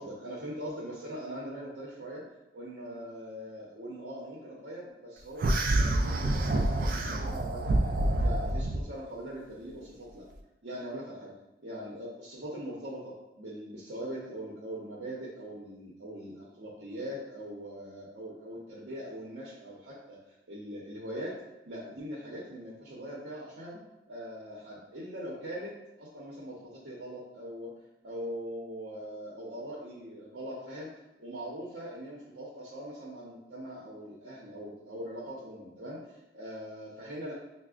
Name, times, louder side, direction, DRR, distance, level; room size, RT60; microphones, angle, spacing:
voice 1, 0.0-2.2 2.5-5.5 5.8-7.9 8.2-10.3 10.6-11.3 11.6-20.2 20.5-21.4 21.7-23.8 24.1-27.7 28.0-30.9 31.2-36.0 36.3-37.3, equal, 80° right, -6 dB, 0.8 m, -41 dB
sound 1, 5.4-8.8, right 1 dB, 50° right, 0.3 m, -27 dB
5.7 x 2.1 x 2.4 m, 0.93 s
head